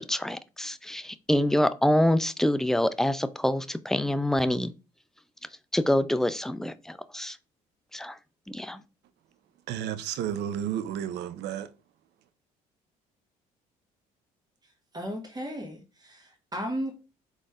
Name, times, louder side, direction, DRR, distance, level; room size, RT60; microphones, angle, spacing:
voice 1, 0.0-4.7 5.7-7.4 7.9-8.2 8.5-8.8, left 1 dB, ahead, 0.4 m, -26 dB
voice 2, 9.7-11.7, right 10 dB, 65° right, 0.6 m, -32 dB
voice 3, 14.9-16.9, equal, 20° right, 1.9 m, -35 dB
4.0 x 3.3 x 3.7 m
hypercardioid pair, 60°, 19 cm